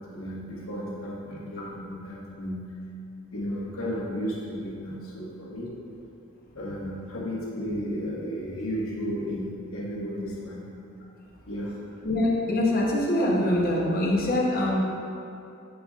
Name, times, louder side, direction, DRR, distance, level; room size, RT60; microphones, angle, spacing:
voice 1, 0.1-2.6 3.3-5.7 6.5-10.6 11.5-11.7, equal, 65° left, -6 dB, 1.3 m, -33 dB
voice 2, 12.0-14.8, left 1 dB, 45° left, -4 dB, 0.9 m, -24 dB
7.7 x 5.2 x 2.4 m, 2.6 s
head